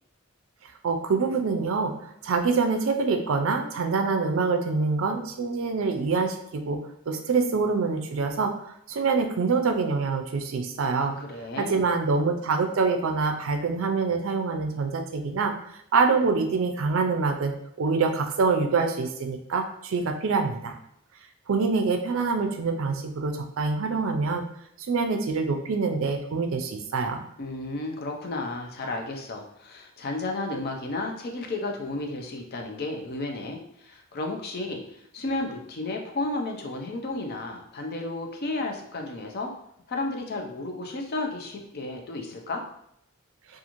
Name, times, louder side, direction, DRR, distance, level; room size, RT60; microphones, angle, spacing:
voice 1, 0.8-1.9 2.2-6.8 7.1-8.5 8.9-11.1 11.6-15.5 15.9-20.8 21.5-24.4 24.9-27.2, right 4 dB, 65° right, 4 dB, 0.4 m, -25 dB
voice 2, 11.0-11.9 27.4-39.5 39.9-42.6, left 2 dB, 45° left, 2 dB, 0.5 m, -33 dB
2.9 x 2.4 x 2.5 m, 0.73 s
head